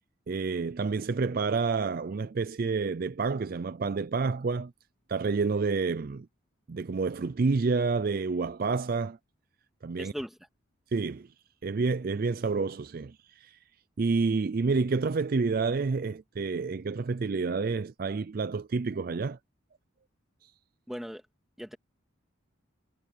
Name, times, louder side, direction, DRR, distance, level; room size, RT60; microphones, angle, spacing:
voice 1, 0.3-4.7 5.1-6.3 6.7-9.2 9.8-10.1 10.9-11.3 11.6-13.6 14.0-19.4 20.4-20.5, right 4 dB, 45° right, 0.4 m, -29 dB
voice 2, 10.0-10.4 20.9-21.2 21.6-21.8, equal, ahead, 2.2 m, -38 dB
head